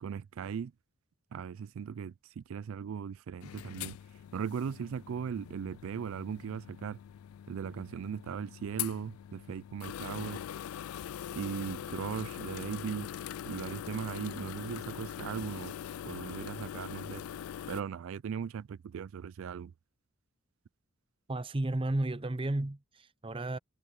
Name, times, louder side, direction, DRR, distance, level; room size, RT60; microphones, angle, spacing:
voice 1, 0.0-0.7 1.3-4.0 4.3-7.0 7.5-10.4 11.3-13.1 13.5-15.7 16.0-17.2 17.7-19.7, right 7 dB, 70° right, 0.3 m, -38 dB
sound 1, 3.4-17.8, left 10 dB, 85° left, 0.3 m, -42 dB
voice 2, 21.3-23.6, right 2 dB, 25° right, 0.7 m, -33 dB
head